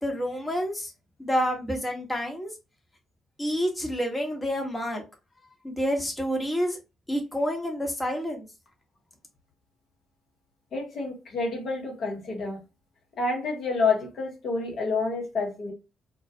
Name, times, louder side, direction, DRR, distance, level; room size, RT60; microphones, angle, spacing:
voice 1, 0.0-0.9 1.2-2.5 3.4-5.0 5.6-6.8 7.1-8.5, equal, 20° left, 0.9 m, -28 dB
voice 2, 10.7-12.6 13.2-15.7, left 4 dB, 60° left, 0.9 m, -28 dB
2.2 x 2.2 x 2.6 m
hypercardioid pair, 45°, 0 cm